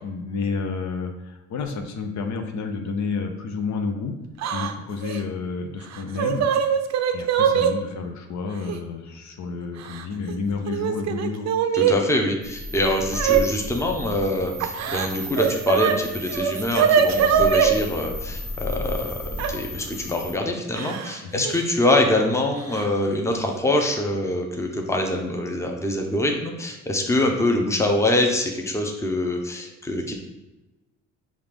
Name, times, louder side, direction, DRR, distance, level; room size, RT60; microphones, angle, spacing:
voice 1, 0.0-4.2 4.5-6.5 7.1-11.5 21.2-21.4, left 4 dB, 65° left, 4 dB, 0.6 m, -30 dB
Yell / Crying sobbing, 4.4-4.7 5.0-5.2 5.9-7.7 8.7-8.8 9.8-10.3 10.7-12.0 13.1-13.4 14.6-15.9 16.3-17.7 19.4-19.5 20.7-21.2 21.4-21.6 22.7-22.8 23.3-23.6, right 8 dB, 60° right, 0.5 m, -22 dB
voice 2, 11.7-30.1, left 1 dB, 10° left, 2 dB, 0.7 m, -24 dB
sound 1, 12.4-20.3, left 1 dB, 50° left, 1.1 m, -34 dB
5.5 x 2.5 x 3.4 m, 1.0 s
cardioid pair, 90°, 30 cm